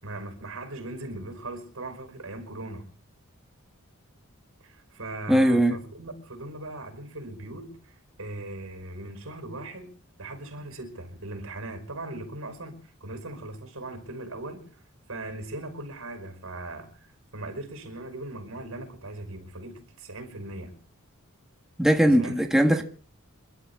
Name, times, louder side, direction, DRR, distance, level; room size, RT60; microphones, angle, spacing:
voice 1, 0.0-2.9 4.6-9.9 10.2-14.7 15.1-16.9 17.3-20.8 22.1-22.4 22.7-22.8, right 2 dB, 75° right, 5.2 m, -39 dB
voice 2, 5.3-5.8 21.8-22.8, equal, ahead, 1.4 m, -20 dB
28.5 x 12.0 x 3.6 m
head